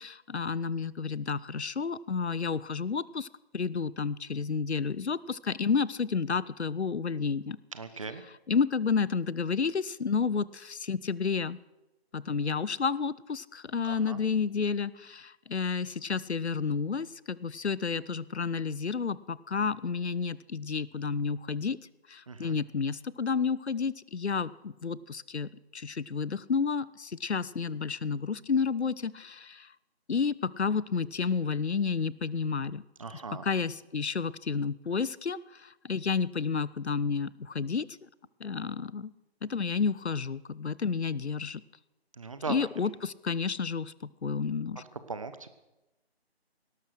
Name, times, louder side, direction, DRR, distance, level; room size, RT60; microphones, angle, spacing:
voice 1, 0.0-3.3 3.5-7.6 8.5-11.6 12.1-21.8 22.1-29.7 30.1-32.8 33.1-37.9 38.4-39.1 39.4-41.6 42.5-43.9 44.2-44.8, left 5 dB, 85° left, 20 dB, 0.7 m, -31 dB
voice 2, 7.7-8.2 13.8-14.2 22.3-22.5 33.0-33.4 42.2-42.5 45.1-45.5, right 4 dB, 30° right, 11 dB, 0.9 m, -38 dB
18.0 x 12.0 x 6.3 m, 1.0 s
figure-of-eight pair, 160°, 32 cm